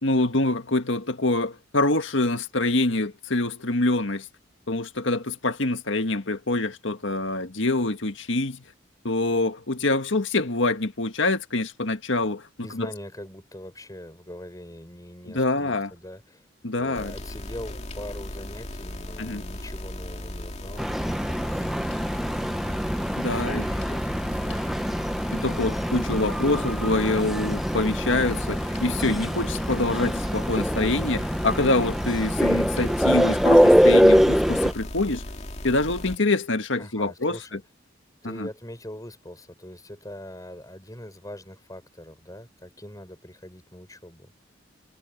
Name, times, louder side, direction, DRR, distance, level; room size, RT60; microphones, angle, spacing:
voice 1, 0.0-4.3 4.7-8.6 9.0-12.9 15.3-15.9 16.6-17.1 19.2-19.4 23.2-23.6 25.3-35.2 35.6-37.4 38.2-38.5, left 2 dB, 70° left, 1.8 m, -25 dB
voice 2, 12.6-16.4 16.7-22.7 23.2-25.0 36.8-37.6 38.2-44.3, left 1 dB, 20° left, 6.3 m, -42 dB
sound 1, 16.9-36.2, left 1 dB, 35° left, 2.4 m, -37 dB
sound 2, 20.8-34.7, equal, ahead, 0.9 m, -23 dB
head